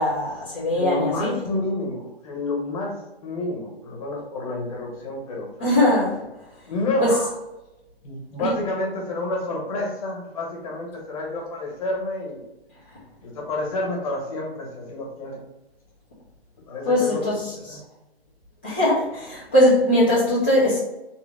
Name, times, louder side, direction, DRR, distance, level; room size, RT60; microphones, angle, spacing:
voice 1, 0.0-1.3 5.6-6.2 7.0-7.1 8.4-8.5 16.9-17.4 17.7-17.8 18.6-20.8, left 1 dB, 10° left, -11 dB, 0.4 m, -20 dB
voice 2, 0.7-5.7 6.7-7.3 8.0-12.5 13.2-15.4 16.7-17.9, left 2 dB, 35° left, -1 dB, 1.4 m, -29 dB
3.6 x 2.8 x 4.8 m, 0.99 s
hypercardioid pair, 155°, 32 cm